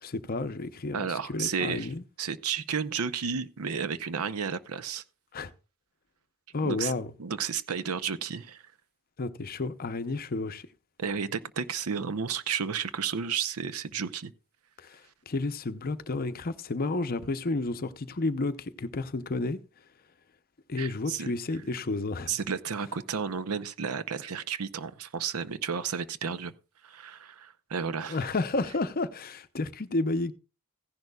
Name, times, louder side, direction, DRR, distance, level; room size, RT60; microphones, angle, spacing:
voice 1, 0.0-2.0 5.3-5.5 6.5-7.1 9.2-10.7 14.8-19.6 20.7-22.4 28.1-30.3, left 3 dB, 45° left, 0.7 m, -31 dB
voice 2, 0.9-1.9 2.2-5.0 6.6-8.6 11.0-14.3 20.8-21.3 22.3-26.5 26.8-28.2, right 6 dB, 85° right, 0.7 m, -32 dB
15.5 x 10.5 x 2.3 m
head